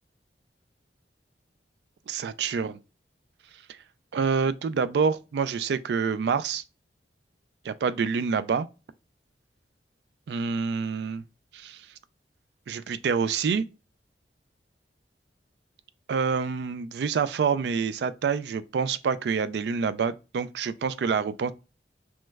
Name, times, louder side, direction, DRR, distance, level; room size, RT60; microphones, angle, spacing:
voice 1, 2.1-2.8 4.1-6.6 7.6-8.7 10.3-11.2 11.5-11.8 12.7-13.7 16.1-21.5, right 6 dB, 65° right, 0.3 m, -27 dB
3.2 x 3.1 x 2.2 m
head